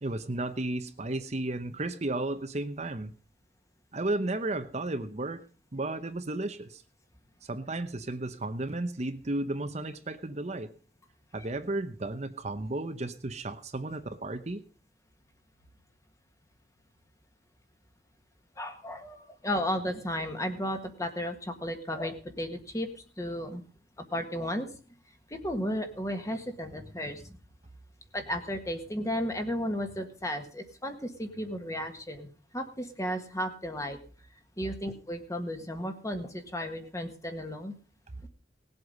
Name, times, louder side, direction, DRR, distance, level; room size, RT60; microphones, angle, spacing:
voice 1, 0.0-3.1 3.9-5.4 5.7-6.8 7.4-10.7 11.3-14.6, right 2 dB, 35° right, 8 dB, 0.9 m, -33 dB
voice 2, 18.6-23.6 24.0-24.7 25.3-27.3 28.1-32.3 32.5-34.0 34.6-37.7, equal, 15° left, 6 dB, 1.7 m, -34 dB
18.5 x 8.0 x 5.4 m, 0.39 s
head